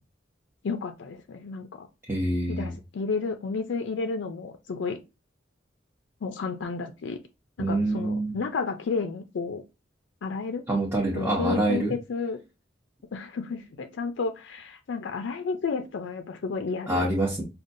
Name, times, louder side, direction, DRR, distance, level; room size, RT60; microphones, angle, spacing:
voice 1, 0.6-1.9 2.5-5.0 6.2-7.2 7.6-9.6 10.2-10.6 11.1-12.4 13.1-17.1, left 4 dB, 80° left, 0.4 m, -31 dB
voice 2, 2.1-2.7 7.6-8.3 10.7-11.9 16.9-17.4, right 2 dB, 15° right, 0.7 m, -26 dB
5.1 x 2.3 x 2.6 m
head